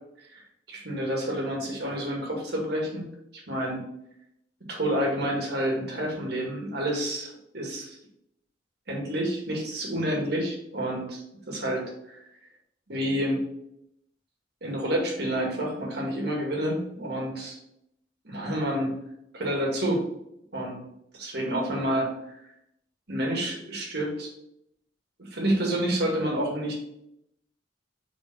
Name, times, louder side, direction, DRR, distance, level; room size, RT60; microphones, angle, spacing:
voice 1, 0.7-3.1 3.5-3.8 4.7-7.9 8.9-11.8 12.9-13.4 14.6-17.6 18.2-18.9 19.3-20.0 20.5-20.8 21.2-22.3 23.1-24.3 25.2-26.7, right 1 dB, 60° right, -1 dB, 2.1 m, -29 dB
4.7 x 4.6 x 5.4 m, 0.79 s
head